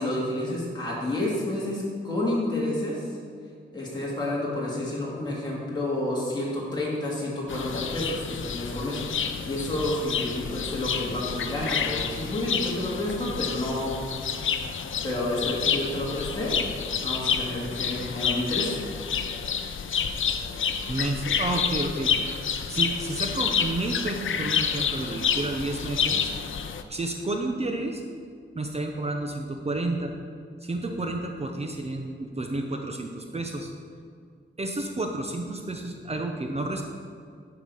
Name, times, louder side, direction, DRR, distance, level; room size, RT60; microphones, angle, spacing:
voice 1, 0.0-3.0 3.7-14.0 14.5-14.7 15.0-16.6 17.0-18.8, left 1 dB, 20° left, -6 dB, 2.2 m, -30 dB
sound 1, 7.5-26.8, left 7 dB, 75° left, 0.6 m, -29 dB
voice 2, 20.9-22.1 22.7-26.3 26.9-28.0 28.5-30.1 30.6-33.7 34.6-36.8, right 2 dB, 30° right, 3 dB, 0.7 m, -30 dB
11.0 x 4.9 x 5.4 m, 2.2 s
wide cardioid pair, 125°, 21 cm